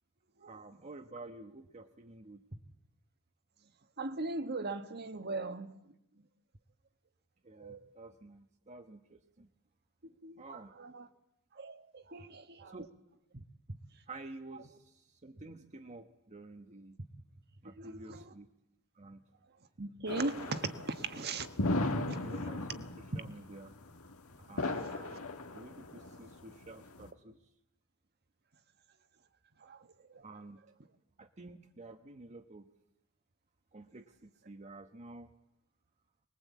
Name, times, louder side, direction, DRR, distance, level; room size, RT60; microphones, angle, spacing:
voice 1, 0.4-2.6 7.4-9.5 10.4-10.7 12.6-12.9 13.3-13.8 14.1-17.1 17.6-18.5 18.9-19.2 19.9-20.4 21.7-23.8 24.4-25.1 25.5-27.5 30.2-30.6 31.2-32.7 33.7-35.3, right 2 dB, 30° right, 1.1 m, -50 dB
voice 2, 4.0-5.7 7.6-7.8 10.2-11.0 11.6-12.7 17.8-18.2 19.8-20.3 20.8-21.5 23.1-23.2 24.9-25.2 29.6-29.8 30.1-30.2, right 3 dB, 50° right, 1.4 m, -39 dB
sound 1, 20.1-27.1, left 2 dB, 70° left, 1.8 m, -37 dB
24.0 x 20.5 x 8.4 m
head